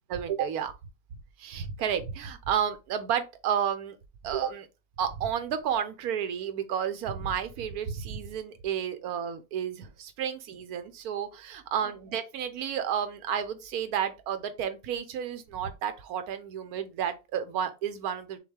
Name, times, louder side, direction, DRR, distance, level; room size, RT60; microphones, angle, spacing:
voice 1, 0.1-0.7 1.4-4.0 4.2-4.7 5.0-18.4, right 8 dB, 70° right, 1.1 m, -31 dB
6.2 x 2.3 x 3.4 m
omnidirectional pair, 1.7 m